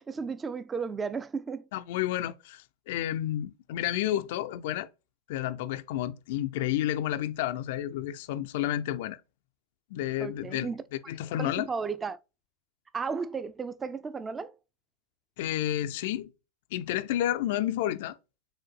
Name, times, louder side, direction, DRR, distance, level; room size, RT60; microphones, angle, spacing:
voice 1, 0.0-1.7 10.2-10.8 11.4-12.2 12.9-14.5, right 5 dB, 15° right, 0.4 m, -34 dB
voice 2, 1.7-4.9 5.3-9.2 9.9-10.7 11.1-11.7 15.4-16.3 16.7-18.2, left 12 dB, 50° left, 0.3 m, -30 dB
5.0 x 3.7 x 2.3 m
figure-of-eight pair, 90°, 0 cm